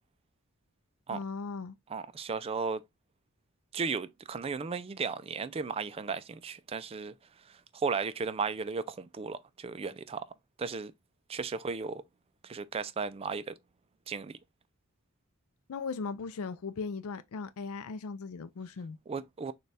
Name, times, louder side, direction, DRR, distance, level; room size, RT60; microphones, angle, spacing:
voice 1, 1.1-1.8 15.7-19.0, left 4 dB, 75° left, 0.4 m, -38 dB
voice 2, 1.9-2.8 3.7-7.1 7.7-10.2 10.6-10.9 11.3-12.0 12.4-13.5 14.1-14.4 19.1-19.5, right 5 dB, 25° right, 0.3 m, -35 dB
6.5 x 2.3 x 3.3 m
head